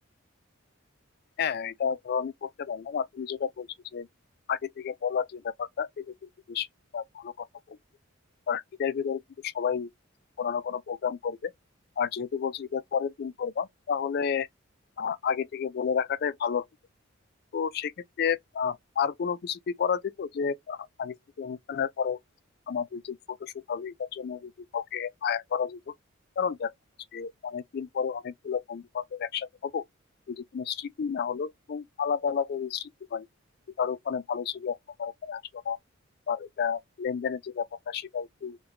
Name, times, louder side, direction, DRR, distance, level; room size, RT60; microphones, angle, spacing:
voice 1, 1.4-4.1 4.5-6.7 6.9-7.8 8.5-9.9 10.4-11.5 12.0-14.5 15.0-16.6 17.5-17.9 18.2-22.2 22.7-25.9 26.4-26.7 27.1-29.8 30.3-33.3 33.8-35.8 36.3-38.6, left 7 dB, 50° left, 0.3 m, -31 dB
3.8 x 2.2 x 2.8 m
head